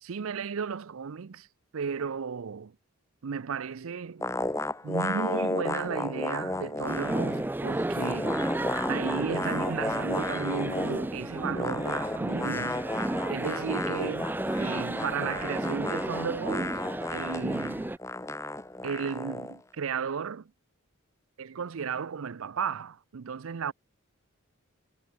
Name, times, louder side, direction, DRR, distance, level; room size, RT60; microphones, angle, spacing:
voice 1, 0.0-1.5 1.7-2.7 3.2-4.2 4.8-8.4 8.9-12.8 13.3-14.3 14.6-16.9 17.1-17.9 18.8-20.5 21.4-23.7, right 6 dB, 75° right, 0.5 m, -34 dB
sound 1, 4.2-7.5 7.8-11.1 11.5-19.6, left 2 dB, 15° left, 0.9 m, -34 dB
sound 2, 6.8-18.0, right 1 dB, 10° right, 0.4 m, -32 dB
head